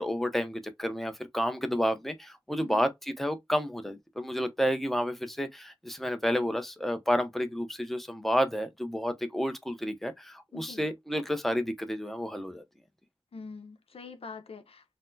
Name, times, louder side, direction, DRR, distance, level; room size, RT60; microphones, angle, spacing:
voice 1, 0.0-2.9 3.2-12.6, equal, 5° left, 0.6 m, -30 dB
voice 2, 10.5-10.9 13.3-15.0, left 4 dB, 85° left, 0.6 m, -45 dB
4.1 x 2.0 x 2.6 m
wide cardioid pair, 80°, 10 cm